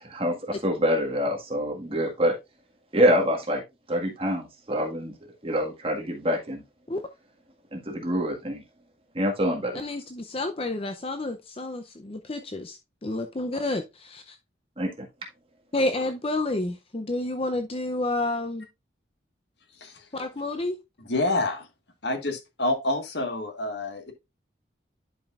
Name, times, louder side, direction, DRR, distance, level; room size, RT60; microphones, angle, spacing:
voice 1, 0.0-2.4 2.9-3.6 3.9-5.1 5.4-6.6 7.7-8.6 9.1-9.8 14.8-15.1, equal, 30° right, 1.7 m, -26 dB
voice 2, 9.7-14.4 15.7-18.7 20.1-20.8, left 2 dB, 30° left, 0.6 m, -30 dB
voice 3, 21.1-21.7 22.0-24.1, left 2 dB, 65° left, 1.6 m, -27 dB
10.5 x 5.3 x 2.4 m
head